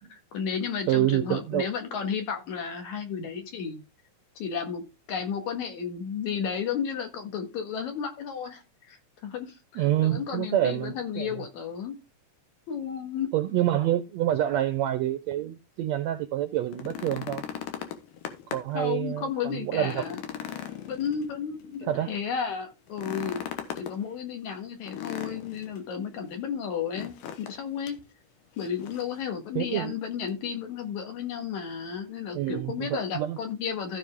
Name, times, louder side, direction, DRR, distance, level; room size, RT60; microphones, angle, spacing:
voice 1, 0.1-3.8 4.4-4.8 5.1-8.6 8.9-9.0 9.2-12.0 12.7-13.3 18.7-20.2 20.9-23.4 23.8-28.0 28.6-34.0, left 7 dB, 65° left, 3.0 m, -33 dB
voice 2, 0.9-1.7 9.7-11.3 13.3-17.4 18.5-20.1 21.8-22.1 29.5-29.9 32.3-33.4, right 13 dB, 80° right, 1.6 m, -27 dB
sound 1, 16.6-18.8 19.2-19.3 19.8-21.7 22.9-24.0 24.9-25.8 26.9-27.6 27.9-28.0 28.6-29.2 30.3-30.4, left 9 dB, 85° left, 2.9 m, -38 dB
15.0 x 5.3 x 3.6 m
omnidirectional pair, 3.8 m